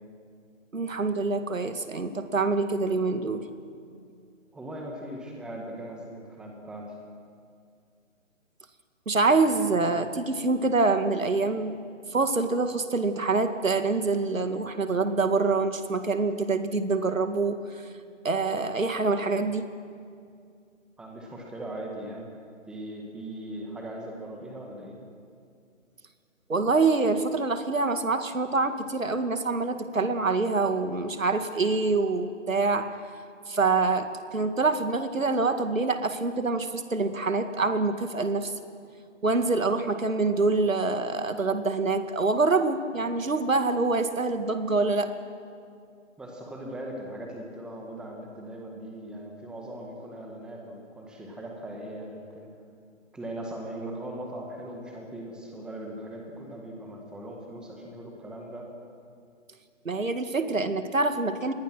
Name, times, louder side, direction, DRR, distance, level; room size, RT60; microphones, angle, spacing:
voice 1, 0.7-3.5 9.1-11.8 12.1-17.9 18.2-19.7 26.5-32.9 33.5-38.5 39.2-45.1 59.8-61.5, right 3 dB, 85° right, 8 dB, 2.1 m, -25 dB
voice 2, 4.5-6.9 21.0-22.3 22.6-25.0 46.2-52.5 53.1-58.7, right 1 dB, ahead, 0 dB, 1.6 m, -39 dB
27.0 x 20.5 x 6.2 m, 2.3 s
figure-of-eight pair, 155°, 39 cm